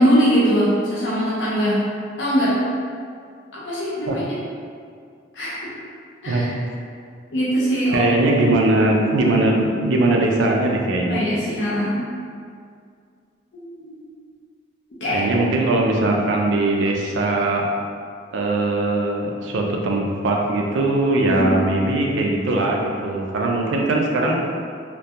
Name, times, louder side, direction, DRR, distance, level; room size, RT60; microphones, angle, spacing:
voice 1, 0.0-1.9 2.2-2.6 3.5-4.4 5.3-5.7 6.2-6.5 7.3-8.1 11.1-12.0 13.5-14.0 15.0-15.2 21.1-21.5, equal, 60° left, -8 dB, 0.5 m, -21 dB
voice 2, 7.9-11.2 15.1-17.7 18.3-24.4, right 2 dB, 70° right, 0 dB, 0.3 m, -20 dB
2.2 x 2.2 x 2.7 m, 2.2 s
head